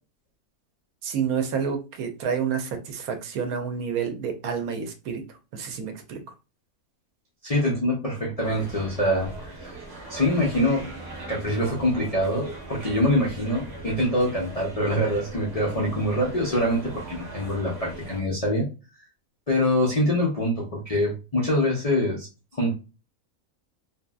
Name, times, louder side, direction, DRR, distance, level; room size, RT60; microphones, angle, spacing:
voice 1, 1.0-5.2 5.5-6.2, right 7 dB, 80° right, 6 dB, 1.1 m, -29 dB
voice 2, 7.4-9.8 10.1-10.9 11.3-18.7 19.5-22.3 22.6-22.8, left 1 dB, 75° left, -2 dB, 0.3 m, -24 dB
sound 1, 8.4-18.2, right 2 dB, 55° right, 0.9 m, -39 dB
2.7 x 2.5 x 2.2 m, 0.30 s
omnidirectional pair, 1.6 m